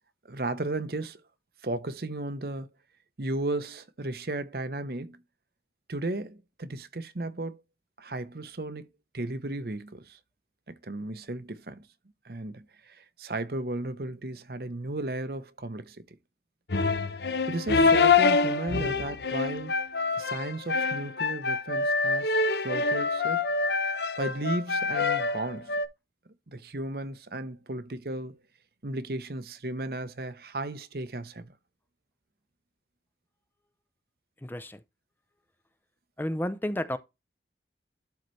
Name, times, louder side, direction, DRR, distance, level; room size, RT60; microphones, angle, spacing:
voice 1, 0.2-1.2 1.6-2.7 3.2-5.2 5.9-7.6 8.0-8.9 9.1-10.2 10.7-11.9 12.2-16.0 17.5-19.7 20.2-22.4 22.6-23.5 24.2-25.7 26.5-28.4 28.8-31.5, right 2 dB, 55° right, 0.8 m, -35 dB
sound 1, 16.7-25.9, left 4 dB, 75° left, 0.8 m, -26 dB
voice 2, 34.4-34.8 36.2-37.0, left 1 dB, 10° left, 0.5 m, -31 dB
12.0 x 4.0 x 3.2 m
head